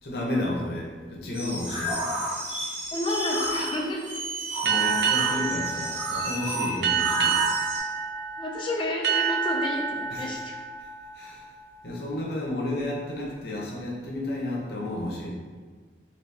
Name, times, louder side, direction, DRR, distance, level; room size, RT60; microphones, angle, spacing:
voice 1, 0.0-2.1 4.6-7.5 10.1-10.5 10.8-10.9 11.1-11.5 11.8-15.3, left 1 dB, 60° left, -3 dB, 0.7 m, -32 dB
sound 1, 1.3-7.8, right 1 dB, 30° right, 1.1 m, -31 dB
voice 2, 2.9-4.0 8.4-10.6, left 1 dB, 30° left, 0 dB, 0.4 m, -30 dB
sound 2, 4.7-11.9, right 7 dB, 75° right, 0.4 m, -28 dB
2.9 x 2.8 x 3.3 m, 1.5 s
head